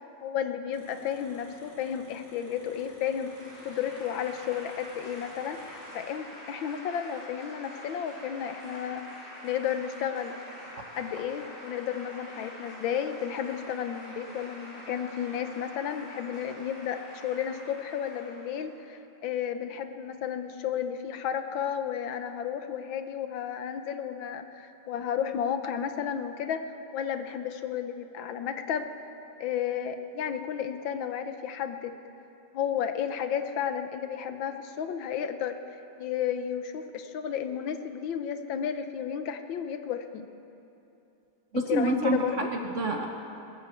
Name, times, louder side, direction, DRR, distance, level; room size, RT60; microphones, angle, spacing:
voice 1, 0.0-3.4 3.7-10.3 11.0-28.9 29.4-31.9 32.5-35.6 36.0-40.3 41.5-42.5, left 8 dB, 80° left, 8 dB, 1.6 m, -33 dB
sound 1, 0.7-6.0, equal, 60° left, 4.5 m, -54 dB
sound 2, 2.7-18.8, equal, 40° left, 5.4 m, -46 dB
voice 2, 41.5-43.1, right 2 dB, 50° right, 3 dB, 1.1 m, -28 dB
20.5 x 9.6 x 6.9 m, 2.9 s
omnidirectional pair, 2.1 m